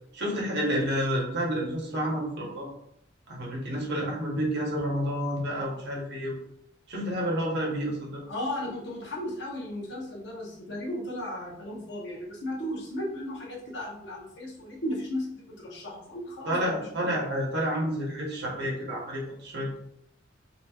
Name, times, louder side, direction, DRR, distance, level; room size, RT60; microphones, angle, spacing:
voice 1, 0.1-2.7 3.3-6.4 6.9-8.2 16.5-19.8, equal, 60° right, -2 dB, 0.8 m, -29 dB
voice 2, 8.3-17.1, left 1 dB, 60° left, -2 dB, 0.8 m, -35 dB
2.9 x 2.7 x 2.3 m, 0.73 s
head